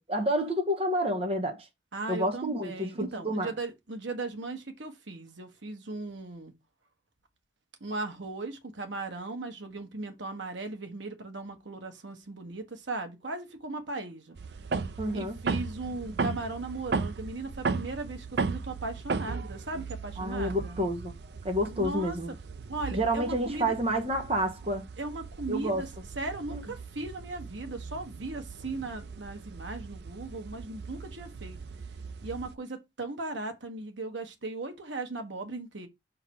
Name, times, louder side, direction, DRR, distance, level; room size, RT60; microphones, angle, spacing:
voice 1, 0.1-1.7 2.1-3.5 15.0-15.3 20.2-21.1 21.4-22.3 22.9-24.8 25.5-25.8 26.5-26.6, equal, 30° right, 1.3 m, -29 dB
voice 2, 1.9-6.5 7.8-14.4 15.1-20.8 21.7-22.2 22.7-23.7 25.0-25.9 26.1-31.6 32.2-35.9, right 2 dB, 80° right, 1.3 m, -37 dB
sound 1, 14.4-32.6, right 4 dB, 60° right, 0.4 m, -37 dB
5.6 x 3.8 x 4.6 m
head